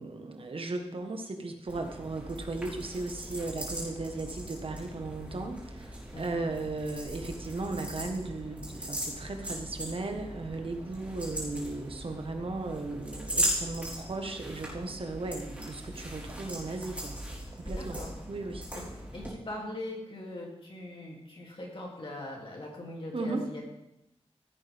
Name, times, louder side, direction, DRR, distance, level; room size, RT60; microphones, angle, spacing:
voice 1, 0.0-17.2 17.6-18.0 18.3-18.6 23.1-23.4, right 3 dB, 60° right, 4 dB, 1.5 m, -36 dB
sound 1, 1.7-19.3, equal, 15° right, 3.9 m, -39 dB
voice 2, 17.6-18.2 18.7-18.9 19.1-23.6, left 1 dB, 55° left, -2 dB, 2.9 m, -41 dB
15.5 x 9.0 x 3.6 m, 0.84 s
wide cardioid pair, 100°, 11 cm